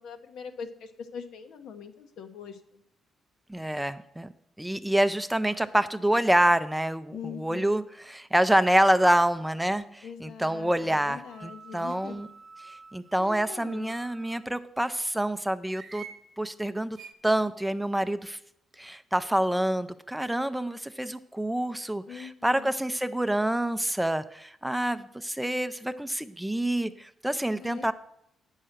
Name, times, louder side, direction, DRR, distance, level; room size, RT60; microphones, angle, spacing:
voice 1, 0.0-2.8 7.1-7.8 10.0-12.2 13.2-14.0 22.1-22.7 27.6-27.9, left 7 dB, 80° left, 7 dB, 0.9 m, -42 dB
voice 2, 3.5-4.3 4.6-12.3 12.7-16.0 16.4-17.0 17.2-18.4 18.8-27.9, right 1 dB, 5° right, 12 dB, 0.4 m, -27 dB
sound 1, 10.6-14.4 15.7-16.2 17.0-17.1, right 5 dB, 40° right, 0.9 m, -48 dB
8.8 x 5.6 x 6.5 m, 0.76 s
cardioid pair, 90°, 0 cm